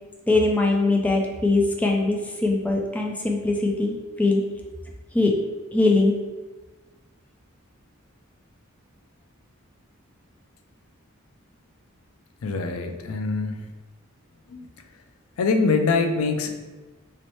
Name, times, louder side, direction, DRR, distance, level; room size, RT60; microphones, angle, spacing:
voice 1, 0.3-4.4 5.1-5.3 5.7-6.1, left 2 dB, 5° left, 0 dB, 0.3 m, -21 dB
voice 2, 12.4-13.6 14.5-14.7 15.4-16.6, left 4 dB, 85° left, 6 dB, 0.4 m, -24 dB
3.1 x 2.8 x 3.0 m, 1.2 s
head